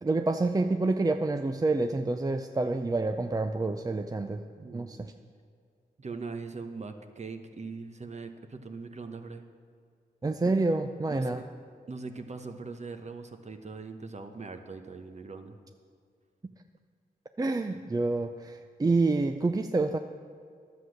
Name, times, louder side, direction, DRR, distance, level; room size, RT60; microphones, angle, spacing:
voice 1, 0.0-4.4 4.7-5.1 10.2-11.4 17.4-20.0, right 3 dB, 20° right, 6 dB, 0.5 m, -28 dB
voice 2, 4.6-4.9 6.0-9.4 11.1-11.5 11.9-15.6, right 4 dB, 45° right, 7 dB, 1.0 m, -41 dB
11.5 x 7.9 x 6.5 m, 2.2 s
cardioid pair, 75°, 17 cm